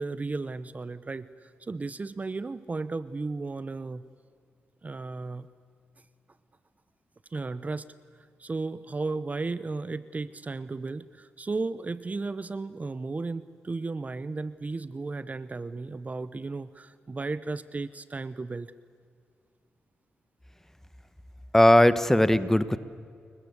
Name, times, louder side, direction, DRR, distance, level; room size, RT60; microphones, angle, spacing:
voice 1, 0.0-4.0 4.8-5.5 7.3-7.9 8.4-18.7, right 3 dB, 35° right, 16 dB, 0.9 m, -34 dB
voice 2, 21.5-22.8, left 1 dB, 10° left, 14 dB, 1.4 m, -19 dB
29.0 x 22.5 x 8.2 m, 2.2 s
cardioid pair, 65°, 4 cm